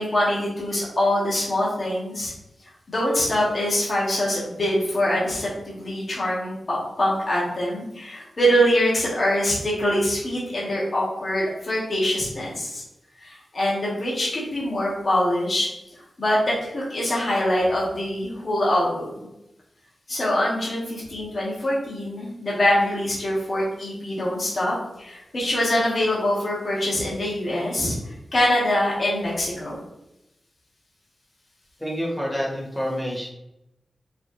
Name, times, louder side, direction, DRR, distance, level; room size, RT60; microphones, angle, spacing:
voice 1, 0.0-2.3 2.9-12.8 13.2-15.7 16.2-19.3 20.1-27.9 28.3-29.8, equal, 40° left, -6 dB, 1.4 m, -24 dB
voice 2, 31.8-33.3, equal, 5° left, -5 dB, 1.3 m, -28 dB
4.5 x 3.3 x 2.7 m, 0.87 s
wide cardioid pair, 150°, 0 cm